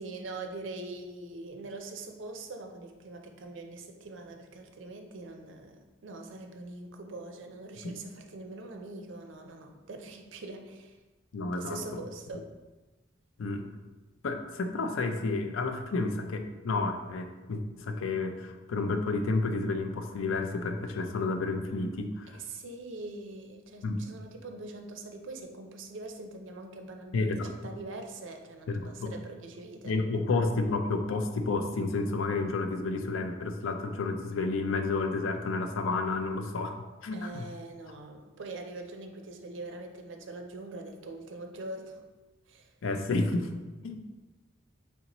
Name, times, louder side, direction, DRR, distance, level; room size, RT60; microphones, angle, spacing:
voice 1, 0.0-11.0 11.5-12.5 22.3-29.9 37.1-42.0 42.5-42.7, right 2 dB, 70° right, 4 dB, 0.5 m, -43 dB
voice 2, 11.3-11.8 13.4-13.7 14.2-22.4 23.8-24.0 27.1-27.5 28.7-29.1 29.8-37.5 42.8-43.5 43.8-44.0, left 3 dB, 85° left, 6 dB, 0.4 m, -31 dB
4.0 x 3.4 x 2.9 m, 1.2 s
head